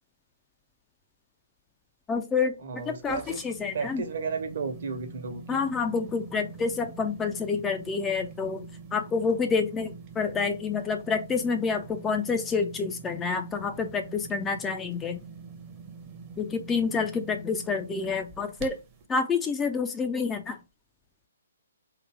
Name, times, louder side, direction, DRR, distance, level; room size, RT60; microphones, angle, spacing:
voice 1, 2.1-4.0 5.5-8.6 8.9-15.2 16.4-18.8 19.1-20.6, left 5 dB, 10° left, 0.4 m, -28 dB
voice 2, 2.6-3.4 3.7-5.6, right 4 dB, 50° right, 1.0 m, -33 dB
sound 1, 2.8-19.1, right 5 dB, 25° right, 0.8 m, -45 dB
3.8 x 2.7 x 4.6 m
figure-of-eight pair, 130°, 0 cm